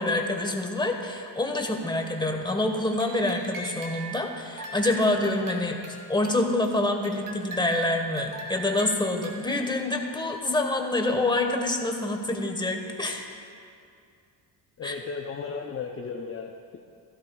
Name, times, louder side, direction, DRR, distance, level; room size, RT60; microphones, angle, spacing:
voice 1, 0.0-5.8 6.1-13.3 14.8-14.9, left 2 dB, 10° left, 2 dB, 1.3 m, -26 dB
sound 1, 2.7-4.2 4.6-6.7 7.0-9.7, right 5 dB, 45° right, 1.9 m, -39 dB
voice 2, 14.8-16.8, left 5 dB, 30° left, 2 dB, 0.7 m, -35 dB
16.0 x 12.5 x 2.4 m, 2.4 s
cardioid pair, 90°, 44 cm